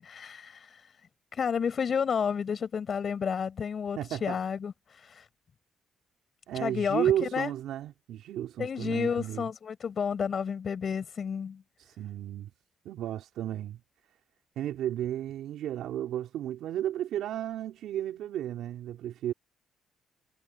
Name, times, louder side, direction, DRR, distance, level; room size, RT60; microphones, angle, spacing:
voice 1, 0.0-0.9 1.3-5.3 6.5-7.5 8.6-11.6, left 6 dB, 50° left, 6.8 m, -31 dB
voice 2, 4.0-4.4 6.5-9.5 11.8-12.5 12.8-13.8 14.6-19.3, right 11 dB, 80° right, 3.9 m, -33 dB
cardioid pair, 90°, 0 cm